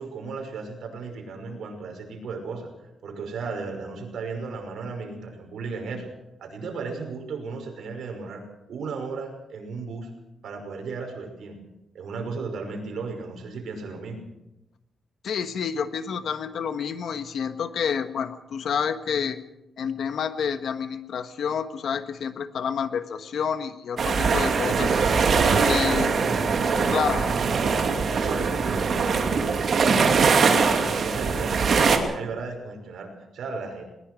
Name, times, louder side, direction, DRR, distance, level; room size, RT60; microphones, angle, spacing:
voice 1, 0.0-2.7 3.0-6.1 6.4-8.4 8.7-10.1 10.4-11.6 11.9-14.2 24.6-27.6 28.1-33.8, right 4 dB, 70° right, 3 dB, 5.6 m, -35 dB
voice 2, 15.2-19.4 19.8-24.9 25.6-26.1 26.9-27.3, left 7 dB, 65° left, 10 dB, 1.4 m, -29 dB
sound 1, 24.0-32.0, right 5 dB, 45° right, 2.5 m, -22 dB
21.0 x 20.0 x 6.2 m, 0.95 s
wide cardioid pair, 160°, 0 cm